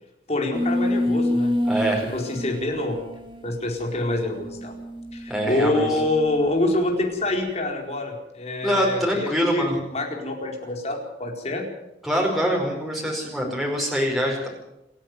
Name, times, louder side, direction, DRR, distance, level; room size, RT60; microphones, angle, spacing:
voice 1, 0.3-1.5 2.1-3.0 3.4-4.7 5.1-11.7, left 2 dB, 35° left, 2 dB, 4.6 m, -26 dB
sound 1, 0.5-6.6, left 1 dB, 25° right, 2.8 m, -28 dB
voice 2, 1.7-2.0 5.3-5.9 8.6-9.8 12.0-14.5, equal, ahead, -2 dB, 4.9 m, -24 dB
28.0 x 10.0 x 9.7 m, 0.88 s
head